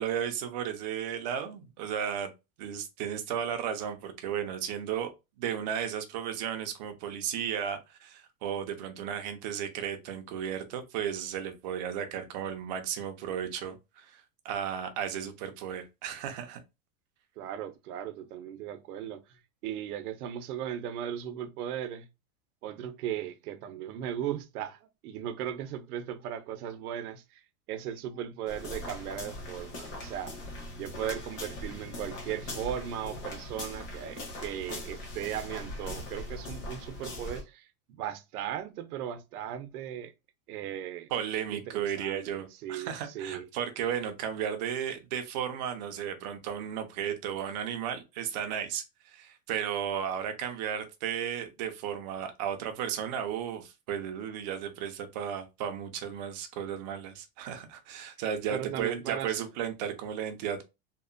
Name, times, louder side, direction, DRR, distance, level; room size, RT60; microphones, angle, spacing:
voice 1, 0.0-2.3 2.6-5.1 5.4-16.6 41.1-60.6, right 9 dB, 35° right, 0.4 m, -34 dB
voice 2, 17.4-22.1 22.6-27.4 27.7-30.3 30.8-40.1 40.5-41.1 41.5-43.5 58.5-59.4, right 10 dB, 85° right, 0.6 m, -37 dB
sound 1, 28.5-37.4, left 2 dB, 35° left, 1.1 m, -40 dB
2.8 x 2.1 x 2.4 m
supercardioid pair, 150°, 44 cm